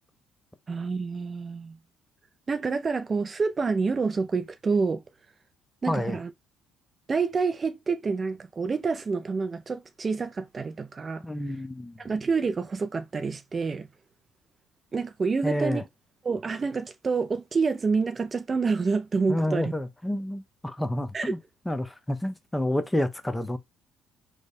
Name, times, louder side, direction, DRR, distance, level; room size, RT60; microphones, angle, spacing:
voice 1, 0.7-1.8 2.5-5.0 5.8-6.3 7.1-11.2 12.0-13.9 14.9-15.8 16.2-19.7 21.1-21.3, right 4 dB, 35° right, 0.4 m, -28 dB
voice 2, 5.9-6.2 11.2-12.0 15.4-15.8 19.3-21.4 21.7-23.6, left 1 dB, 10° left, 0.7 m, -29 dB
3.2 x 2.2 x 4.1 m
supercardioid pair, 75°, 0 cm